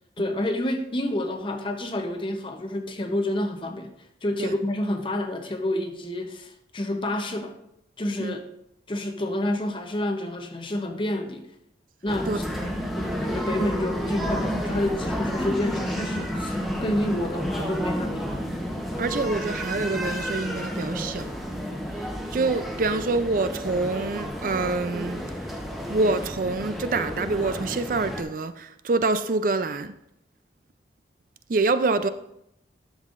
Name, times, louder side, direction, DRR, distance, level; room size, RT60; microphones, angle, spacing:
voice 1, 0.2-3.9 4.2-7.6 8.0-8.4 8.9-11.4 12.0-12.4 13.0-18.3, left 1 dB, 30° left, 0.7 m, -29 dB
sound 1, 12.1-28.2, equal, ahead, 0.9 m, -31 dB
voice 2, 12.2-12.8 19.0-21.3 21.9-25.5 25.9-29.9 31.5-32.1, right 3 dB, 45° right, 0.4 m, -26 dB
11.5 x 7.4 x 2.5 m
head